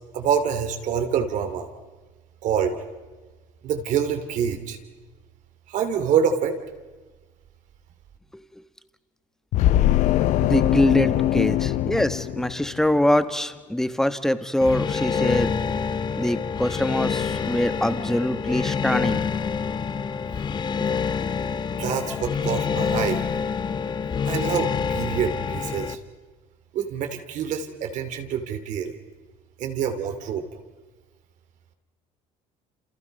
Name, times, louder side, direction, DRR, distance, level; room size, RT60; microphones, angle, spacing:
voice 1, 0.1-1.7 2.4-2.8 3.6-4.8 5.7-6.6 21.8-23.2 24.2-26.0 26.7-29.0 29.6-30.4, right 7 dB, 60° right, 7 dB, 2.7 m, -26 dB
sound 1, 9.5-13.0, left 13 dB, 60° left, 0.7 m, -22 dB
voice 2, 10.4-15.5 16.2-19.2, left 1 dB, 5° left, 11 dB, 1.2 m, -23 dB
sound 2, 14.6-25.9, left 6 dB, 30° left, 1.0 m, -27 dB
28.5 x 28.0 x 5.4 m, 1.3 s
cardioid pair, 110°, 14 cm